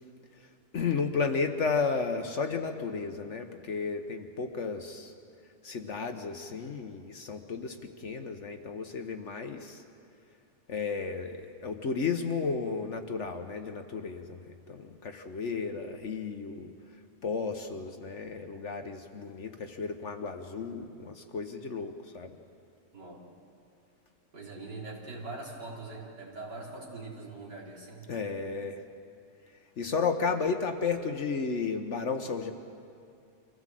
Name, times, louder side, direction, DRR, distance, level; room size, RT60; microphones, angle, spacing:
voice 1, 0.4-5.1 5.6-9.8 10.7-16.7 17.2-22.3 28.1-28.8 29.8-32.5, left 5 dB, 50° left, 6 dB, 1.1 m, -33 dB
voice 2, 24.3-28.1, right 3 dB, 85° right, -3 dB, 4.1 m, -42 dB
25.0 x 16.0 x 7.6 m, 2.5 s
omnidirectional pair, 1.8 m